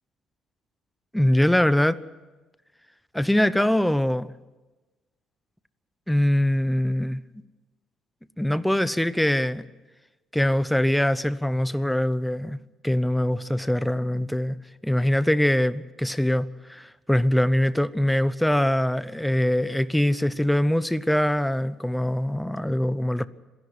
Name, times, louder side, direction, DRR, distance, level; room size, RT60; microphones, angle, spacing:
voice 1, 1.1-2.0 3.1-4.3 6.1-7.2 8.4-9.6 10.3-12.6 12.8-14.6 14.8-23.3, left 1 dB, 5° left, 0.7 m, -23 dB
27.0 x 11.0 x 9.6 m
cardioid pair, 125°, 0 cm